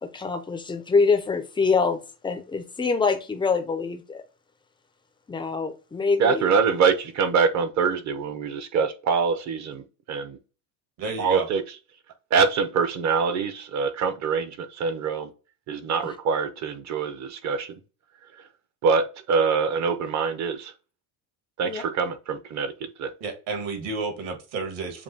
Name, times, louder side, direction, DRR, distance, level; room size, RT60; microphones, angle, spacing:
voice 1, 0.0-4.2 5.3-6.5 21.6-21.8, left 4 dB, 10° left, 0.3 m, -25 dB
voice 2, 6.2-10.4 11.2-11.6 12.3-15.3 15.7-17.7 18.8-20.7 21.6-23.1, right 5 dB, 35° right, 0.6 m, -24 dB
voice 3, 11.0-11.5 23.2-25.0, right 4 dB, 65° right, 1.7 m, -31 dB
7.2 x 2.6 x 2.7 m
cardioid pair, 125°, 48 cm